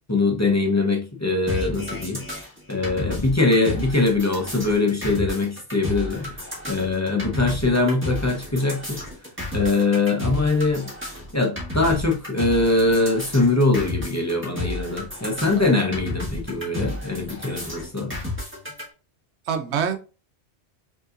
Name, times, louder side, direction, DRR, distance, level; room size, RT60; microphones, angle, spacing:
voice 1, 0.1-2.4 2.7-9.0 9.5-10.9 11.3-18.1, left 3 dB, 15° left, 0.7 m, -22 dB
sound 1, 1.5-18.8, left 1 dB, 10° right, 1.4 m, -32 dB
voice 2, 19.5-20.0, right 7 dB, 75° right, 0.9 m, -26 dB
5.3 x 2.8 x 2.5 m
omnidirectional pair, 1.2 m